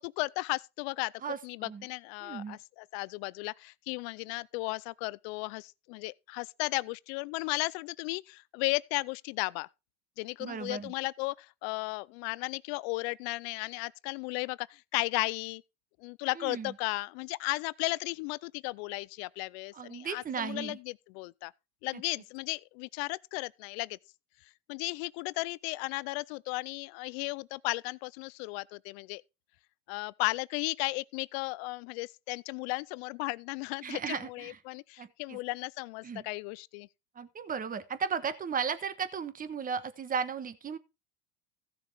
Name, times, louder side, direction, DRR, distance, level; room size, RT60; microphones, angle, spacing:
voice 1, 0.0-1.1 1.4-9.7 10.2-15.6 16.0-21.5 21.8-24.0 24.7-29.2 29.9-36.9, left 24 dB, 65° left, 0.5 m, -35 dB
voice 2, 1.2-1.9 2.2-2.6 10.4-10.9 16.4-16.7 19.7-20.8 33.8-34.6 35.0-35.4 36.0-36.2 37.1-40.8, right 6 dB, 25° right, 1.2 m, -35 dB
15.5 x 6.7 x 3.5 m
supercardioid pair, 105°, 35 cm